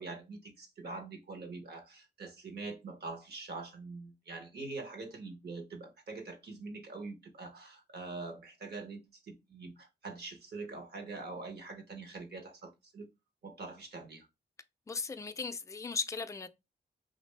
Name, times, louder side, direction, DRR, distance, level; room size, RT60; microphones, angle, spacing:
voice 1, 0.0-13.1 13.4-14.3, right 3 dB, 75° right, 1.0 m, -44 dB
voice 2, 14.9-16.5, left 4 dB, 20° left, 0.3 m, -37 dB
3.0 x 2.5 x 3.2 m
cardioid pair, 80°, 17 cm